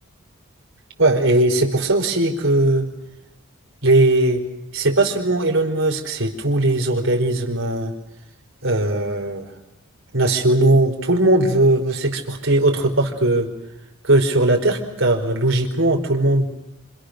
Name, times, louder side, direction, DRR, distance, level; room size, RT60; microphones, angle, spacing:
voice 1, 1.0-2.9 3.8-4.4 4.7-7.9 8.6-9.5 10.1-13.5 14.0-16.5, right 2 dB, 60° right, 2 dB, 4.6 m, -19 dB
29.0 x 26.5 x 6.7 m, 0.87 s
head